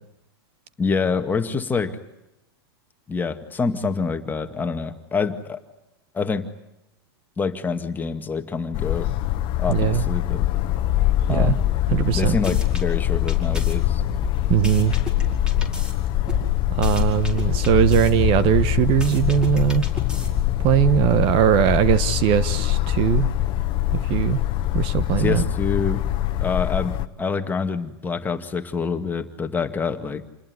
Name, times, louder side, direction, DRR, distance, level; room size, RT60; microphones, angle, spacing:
voice 1, 0.8-2.0 3.1-5.6 6.1-6.5 7.4-9.1 9.6-10.4 11.3-11.6 12.1-14.0 25.2-26.0 26.4-30.3, left 5 dB, 15° left, 6 dB, 2.0 m, -26 dB
sound 1, 8.7-27.1, left 13 dB, 40° left, 1.3 m, -23 dB
voice 2, 9.7-10.0 11.3-11.6 11.9-12.4 14.5-14.9 16.7-19.8 20.6-23.3 23.9-24.4 24.7-25.4, right 10 dB, 40° right, 14 dB, 1.3 m, -20 dB
sound 2, 11.9-12.8 13.3-15.9 16.3-18.1 18.5-20.6, left 2 dB, 5° right, 5.2 m, -33 dB
28.0 x 20.5 x 9.6 m, 0.91 s
hypercardioid pair, 130°, 13 cm